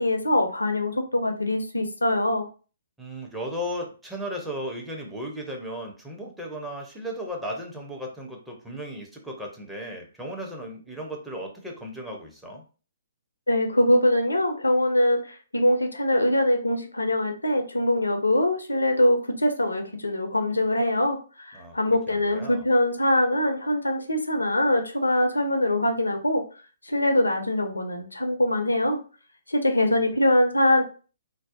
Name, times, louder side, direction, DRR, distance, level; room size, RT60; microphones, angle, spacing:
voice 1, 0.0-2.5 13.5-26.4 26.8-29.0 29.5-30.8, left 1 dB, 80° left, 5 dB, 0.4 m, -23 dB
voice 2, 3.0-12.6 21.5-22.6, equal, 5° right, -1 dB, 0.5 m, -36 dB
2.6 x 2.0 x 2.4 m, 0.36 s
figure-of-eight pair, 125°, 0 cm